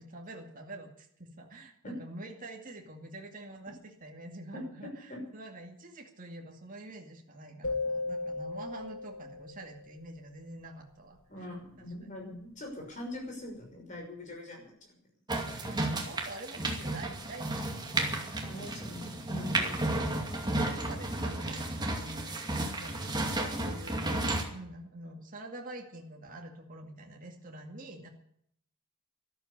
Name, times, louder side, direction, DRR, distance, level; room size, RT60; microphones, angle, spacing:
voice 1, 0.0-11.5 15.6-17.7 20.4-28.1, right 1 dB, 40° right, 1 dB, 2.3 m, -46 dB
voice 2, 4.5-5.2 11.3-15.0 15.6-15.7 18.3-20.0, left 1 dB, 35° left, 1 dB, 6.0 m, -43 dB
sound 1, 7.6-9.9, left 3 dB, 65° left, 2.5 m, -36 dB
sound 2, 15.3-24.4, right 2 dB, 20° right, 2.4 m, -33 dB
13.0 x 12.5 x 8.1 m, 0.69 s
head